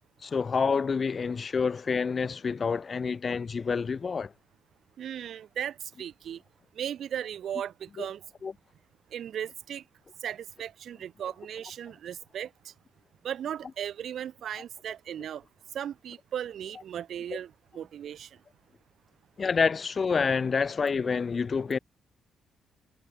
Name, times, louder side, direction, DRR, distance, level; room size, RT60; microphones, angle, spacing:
voice 1, 0.2-4.3 8.0-8.1 8.4-8.5 19.4-21.8, left 5 dB, 40° left, 1.5 m, -28 dB
voice 2, 5.0-6.4 6.8-8.2 9.1-9.8 10.2-12.7 13.2-15.4 15.7-18.3, right 9 dB, 65° right, 0.8 m, -36 dB
cardioid pair, 90°, 0 cm